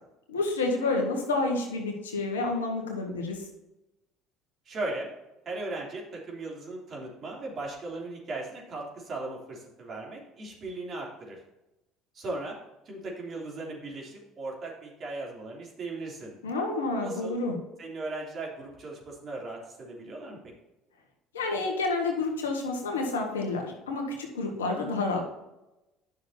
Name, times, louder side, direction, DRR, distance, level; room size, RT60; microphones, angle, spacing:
voice 1, 0.3-3.4 16.4-17.5 21.3-25.2, left 3 dB, 90° left, 2 dB, 1.6 m, -29 dB
voice 2, 4.6-5.1 5.4-11.4 12.1-12.6 12.8-16.3 17.0-17.3 17.8-20.4, right 2 dB, 45° right, -2 dB, 3.1 m, -37 dB
10.5 x 6.4 x 2.8 m, 0.96 s
hypercardioid pair, 65°, 0 cm